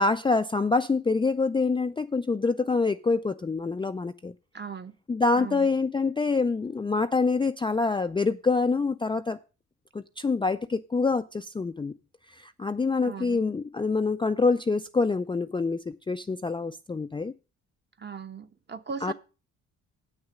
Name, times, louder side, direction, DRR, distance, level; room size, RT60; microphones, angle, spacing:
voice 1, 0.0-4.3 5.1-9.4 9.9-11.9 12.3-17.3 19.0-19.1, left 4 dB, 15° left, 0.4 m, -26 dB
voice 2, 4.5-4.9 5.3-5.7 13.0-13.4 18.0-19.1, right 5 dB, 30° right, 1.0 m, -38 dB
8.1 x 6.4 x 6.1 m
supercardioid pair, 65°, 35 cm